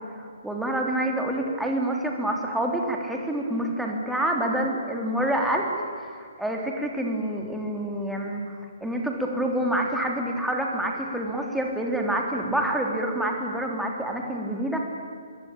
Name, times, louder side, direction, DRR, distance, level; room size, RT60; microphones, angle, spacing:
voice 1, 0.2-8.5 8.8-14.8, right 1 dB, ahead, 0 dB, 3.7 m, -27 dB
26.0 x 22.5 x 9.0 m, 2.2 s
figure-of-eight pair, 130°, 0 cm